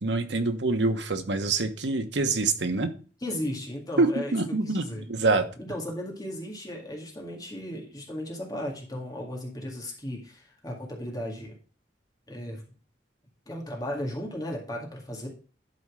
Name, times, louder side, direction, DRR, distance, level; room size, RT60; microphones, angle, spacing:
voice 1, 0.0-2.9 4.0-5.4, right 3 dB, 90° right, 7 dB, 1.2 m, -25 dB
voice 2, 3.2-4.4 4.6-5.0 5.6-11.6 12.3-12.6 13.5-15.3, left 1 dB, 20° left, -2 dB, 2.0 m, -35 dB
11.5 x 4.4 x 4.9 m, 0.39 s
head